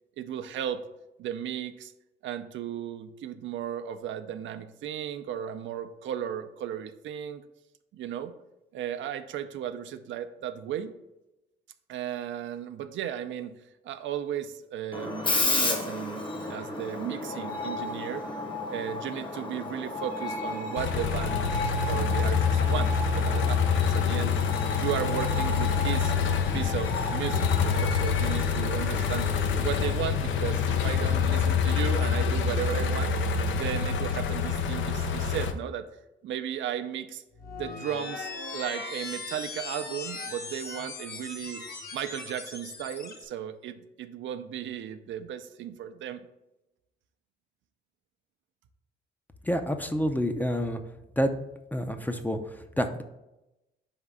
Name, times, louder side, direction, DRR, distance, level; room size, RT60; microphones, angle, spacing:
voice 1, 0.2-0.9 1.2-1.9 2.2-7.4 7.9-8.3 8.7-10.9 11.9-13.5 13.8-16.2 16.5-18.2 18.7-24.3 24.8-26.1 26.5-29.3 29.6-33.1 33.5-35.9 36.2-37.2 37.6-41.6 41.9-46.2, right 10 dB, 70° right, 9 dB, 0.5 m, -35 dB
Screech, 14.9-31.5, left 2 dB, 25° left, 1.0 m, -34 dB
sound 1, 20.8-35.5, left 6 dB, 75° left, 0.6 m, -26 dB
sound 2, 37.3-43.2, left 3 dB, 50° left, 1.3 m, -39 dB
voice 2, 49.4-50.8 51.2-51.4 51.7-53.0, equal, 10° left, 7 dB, 0.5 m, -28 dB
4.8 x 3.6 x 5.4 m, 0.95 s
cardioid pair, 90°, 20 cm